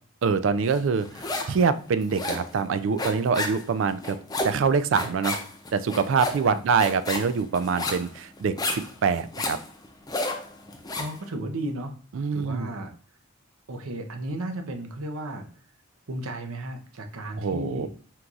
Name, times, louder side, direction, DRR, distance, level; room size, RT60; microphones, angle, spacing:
voice 1, 0.2-4.2 4.4-5.4 5.7-9.6 12.2-12.7 17.4-17.9, right 5 dB, 65° right, 13 dB, 0.3 m, -25 dB
sound 1, 0.7-1.6 1.9-11.2, left 2 dB, 20° left, 0.5 m, -32 dB
voice 2, 11.0-11.9 12.3-12.9 13.7-15.5 16.1-17.9, right 1 dB, 85° right, 5 dB, 0.7 m, -34 dB
4.5 x 2.3 x 3.8 m, 0.41 s
head